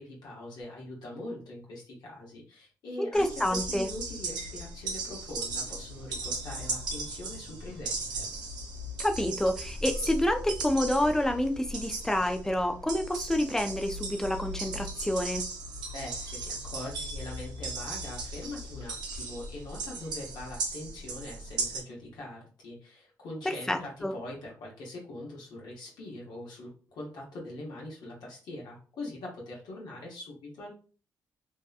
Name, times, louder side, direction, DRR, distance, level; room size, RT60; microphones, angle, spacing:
voice 1, 0.0-3.3 3.6-8.3 15.9-30.7, left 1 dB, 75° left, -3 dB, 0.9 m, -42 dB
voice 2, 3.0-3.9 9.0-15.4 23.4-24.1, left 1 dB, 5° left, 5 dB, 0.4 m, -28 dB
sound 1, 3.1-21.8, right 2 dB, 75° right, 0.6 m, -37 dB
2.7 x 2.1 x 2.3 m, 0.40 s
cardioid pair, 65°, 7 cm